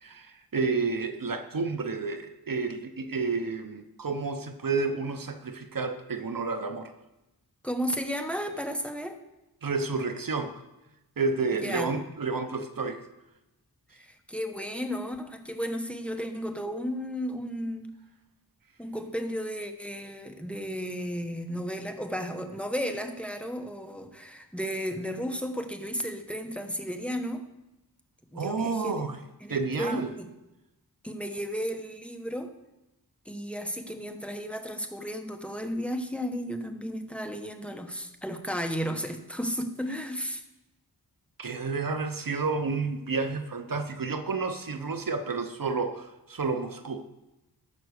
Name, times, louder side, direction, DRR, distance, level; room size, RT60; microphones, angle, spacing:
voice 1, 0.0-6.9 9.6-10.5 11.2-13.0 28.3-29.2 29.5-30.1 41.4-47.1, right 4 dB, 60° right, 8 dB, 1.0 m, -30 dB
voice 2, 7.6-9.2 11.6-11.9 13.9-17.9 18.8-27.4 28.3-29.1 29.4-30.3 31.0-32.5 33.2-40.4, equal, 5° left, 6 dB, 1.1 m, -34 dB
15.0 x 5.9 x 6.6 m, 0.96 s
wide cardioid pair, 80°, 38 cm